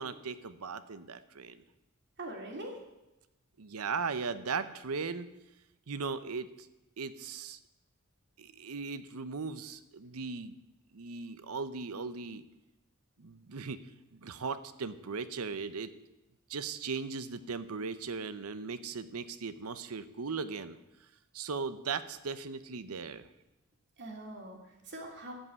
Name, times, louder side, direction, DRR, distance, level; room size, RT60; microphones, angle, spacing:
voice 1, 0.0-1.6 3.6-5.3 5.9-6.7 7.0-7.6 8.4-10.6 10.9-12.4 13.2-13.8 14.1-15.9 16.5-20.8 21.3-23.3, right 5 dB, 80° right, 13 dB, 0.8 m, -38 dB
voice 2, 2.2-2.8 24.0-25.3, right 1 dB, 55° right, 1 dB, 2.8 m, -43 dB
14.5 x 5.5 x 9.5 m, 0.96 s
head